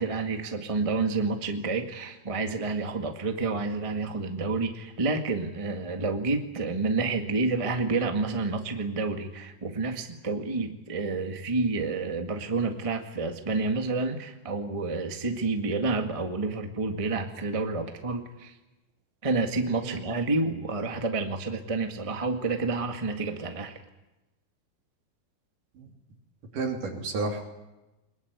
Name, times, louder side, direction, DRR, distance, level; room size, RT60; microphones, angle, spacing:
voice 1, 0.0-18.5 19.2-23.8, right 3 dB, 20° right, 5 dB, 0.8 m, -29 dB
voice 2, 26.5-27.4, right 3 dB, 70° right, 2 dB, 4.5 m, -31 dB
22.5 x 21.5 x 9.4 m, 1.0 s
omnidirectional pair, 3.9 m